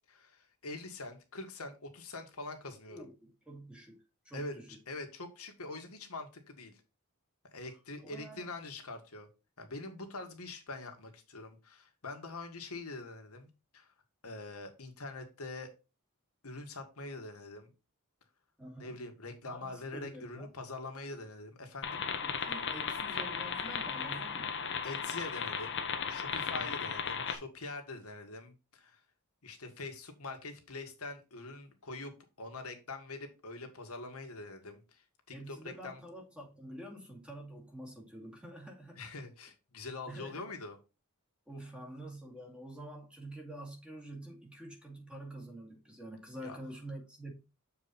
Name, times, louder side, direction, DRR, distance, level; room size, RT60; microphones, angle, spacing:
voice 1, 0.1-3.1 4.3-4.5 4.9-6.8 7.5-9.3 9.6-13.9 14.2-15.7 16.4-17.7 18.8-22.0 24.8-29.0 29.4-32.1 32.4-36.0 39.0-40.8 46.4-46.6, left 2 dB, 75° left, 1.8 m, -44 dB
voice 2, 2.9-4.8 7.6-8.5 18.6-19.0 19.4-20.5 22.2-24.6 26.5-26.9 35.3-39.0 40.1-40.5 41.5-47.3, right 1 dB, 5° right, 2.3 m, -47 dB
sound 1, 21.8-27.4, left 6 dB, 55° left, 1.1 m, -36 dB
7.4 x 4.7 x 4.2 m
head